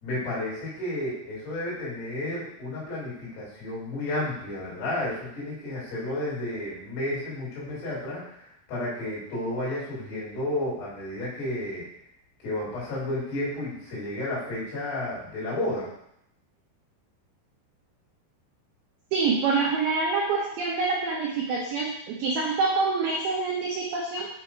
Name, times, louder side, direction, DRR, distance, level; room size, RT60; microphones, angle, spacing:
voice 1, 0.0-11.8 12.4-15.9, left 1 dB, 60° left, -7 dB, 4.3 m, -32 dB
voice 2, 19.1-24.3, right 4 dB, 90° right, -3 dB, 2.1 m, -26 dB
8.0 x 3.0 x 4.5 m, 0.77 s
omnidirectional pair, 5.5 m